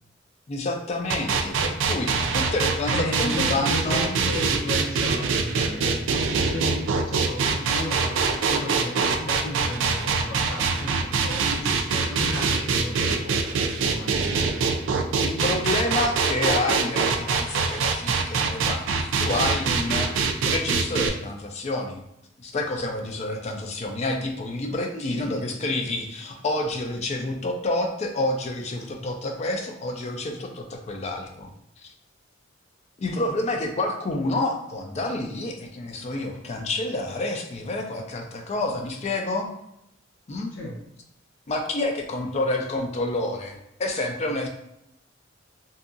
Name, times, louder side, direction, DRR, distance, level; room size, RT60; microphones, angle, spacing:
voice 1, 0.5-4.0 15.2-20.1 20.4-22.0 22.4-31.5 31.8-31.9 33.0-39.5 40.3-40.5 41.5-44.5, left 2 dB, 35° left, 3 dB, 0.4 m, -28 dB
sound 1, 1.1-21.1, right 5 dB, 65° right, 0.3 m, -24 dB
voice 2, 2.9-13.5 13.8-14.7 24.9-25.6 40.5-40.8, left 1 dB, 75° left, -2 dB, 0.7 m, -34 dB
2.7 x 2.3 x 2.5 m, 0.80 s
head